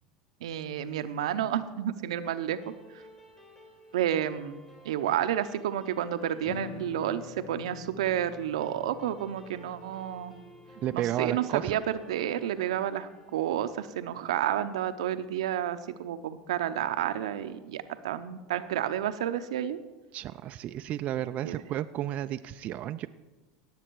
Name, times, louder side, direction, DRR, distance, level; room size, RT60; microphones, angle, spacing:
voice 1, 0.4-2.6 3.9-4.6 4.8-10.3 10.9-19.8 21.4-21.6, right 10 dB, 85° right, 11 dB, 0.7 m, -30 dB
sound 1, 2.2-15.0, equal, 20° left, 3.3 m, -55 dB
sound 2, 6.4-12.7, left 7 dB, 75° left, 1.0 m, -47 dB
voice 2, 10.8-11.8 20.1-23.1, right 12 dB, 45° right, 9 dB, 0.4 m, -32 dB
17.5 x 7.6 x 4.6 m, 1.2 s
hypercardioid pair, 95°, 3 cm